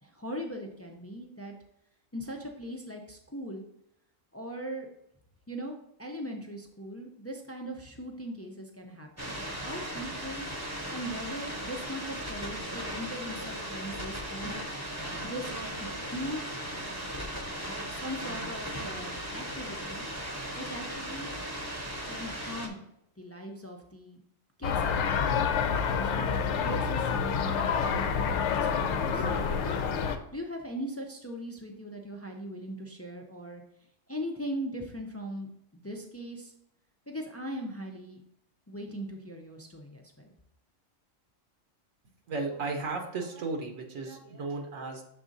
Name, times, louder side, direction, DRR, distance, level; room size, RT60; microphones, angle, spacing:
voice 1, 0.0-1.5 2.1-3.6 4.3-4.9 5.5-10.5 10.9-14.6 15.2-16.5 17.9-20.0 20.6-21.4 22.1-22.8 23.2-24.2 24.6-25.3 26.1-29.8 30.3-33.6 34.1-36.5 37.1-38.2 38.7-40.3, equal, 25° left, 2 dB, 0.3 m, -40 dB
sound 1, 9.2-22.7, equal, 15° right, 0.8 m, -37 dB
sound 2, 24.6-30.2, left 6 dB, 65° left, 0.9 m, -28 dB
voice 2, 42.3-45.0, right 3 dB, 75° right, 2 dB, 1.3 m, -34 dB
6.7 x 3.7 x 3.9 m, 0.79 s
omnidirectional pair, 1.4 m